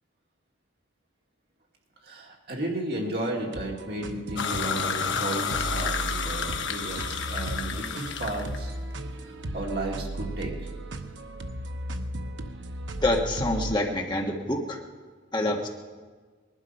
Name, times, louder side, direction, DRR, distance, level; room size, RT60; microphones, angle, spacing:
voice 1, 2.0-8.7 9.5-10.5, right 1 dB, 55° right, -1 dB, 2.4 m, -33 dB
sound 1, 3.4-13.8, right 1 dB, 85° right, 0.9 m, -36 dB
sound 2, 4.4-8.6, left 6 dB, 85° left, 1.1 m, -30 dB
voice 2, 13.0-14.8 15.3-15.7, left 1 dB, 25° left, 1 dB, 1.5 m, -26 dB
19.5 x 12.0 x 5.4 m, 1.5 s
head